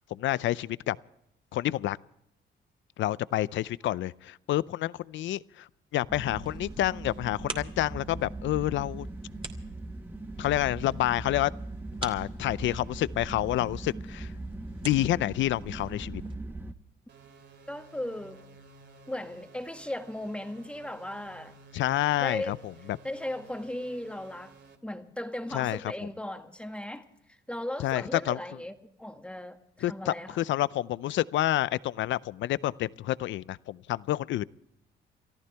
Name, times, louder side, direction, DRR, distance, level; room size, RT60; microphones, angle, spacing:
voice 1, 0.1-1.0 1.5-2.0 3.0-5.4 5.9-9.1 10.4-11.5 12.0-14.3 14.8-16.2 21.7-22.6 25.5-25.8 27.8-28.4 29.8-34.4, left 14 dB, 75° left, 0.5 m, -28 dB
sound 1, 6.1-16.7, right 2 dB, 10° right, 1.1 m, -40 dB
sound 2, 6.2-16.3, right 3 dB, 25° right, 2.4 m, -47 dB
sound 3, 17.1-24.8, right 4 dB, 60° right, 2.4 m, -54 dB
voice 2, 17.7-18.4 19.1-21.5 22.2-22.6 23.0-24.5 24.8-28.7 29.0-30.4, left 1 dB, 5° left, 1.7 m, -37 dB
29.5 x 14.0 x 3.4 m
cardioid pair, 90°, 20 cm